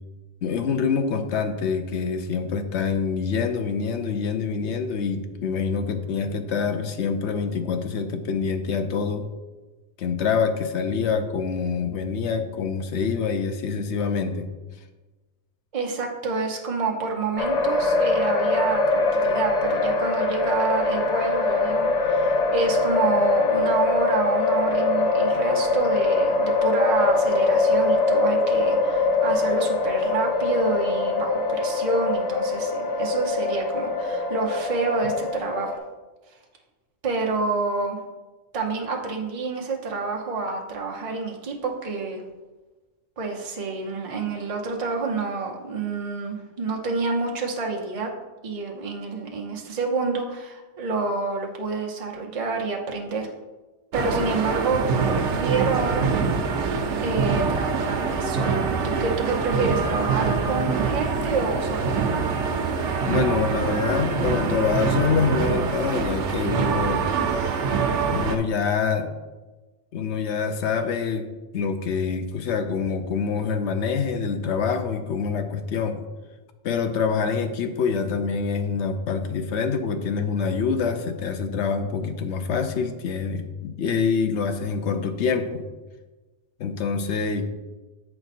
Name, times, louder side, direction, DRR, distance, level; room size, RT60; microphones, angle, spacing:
voice 1, 0.4-9.3 10.0-14.5 63.1-67.1 68.1-69.1 69.9-71.3 71.5-76.0 76.6-85.6 86.6-87.5, left 5 dB, 75° left, 8 dB, 0.9 m, -26 dB
voice 2, 15.7-35.8 37.0-38.0 38.5-42.2 43.2-48.1 48.4-53.3 53.9-56.4 57.0-61.9, right 4 dB, 35° right, 1 dB, 0.8 m, -28 dB
sound 1, 17.4-35.8, left 3 dB, 45° left, 0.6 m, -23 dB
sound 2, 53.9-68.4, right 5 dB, 85° right, 1.0 m, -24 dB
7.9 x 4.4 x 4.2 m, 1.2 s
omnidirectional pair, 1.2 m